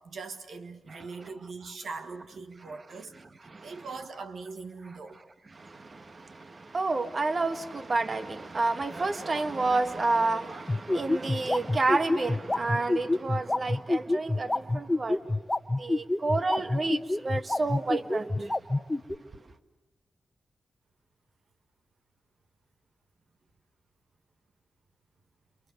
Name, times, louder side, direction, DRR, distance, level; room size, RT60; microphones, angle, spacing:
voice 1, 0.0-3.1 3.6-5.2, right 4 dB, 80° right, 1.6 m, -41 dB
voice 2, 3.4-3.8 5.5-15.2 15.8-18.5, right 3 dB, 50° right, 1.7 m, -30 dB
sound 1, 10.7-19.2, left 2 dB, 20° left, 1.2 m, -26 dB
30.0 x 29.0 x 6.6 m
cardioid pair, 55°, 0 cm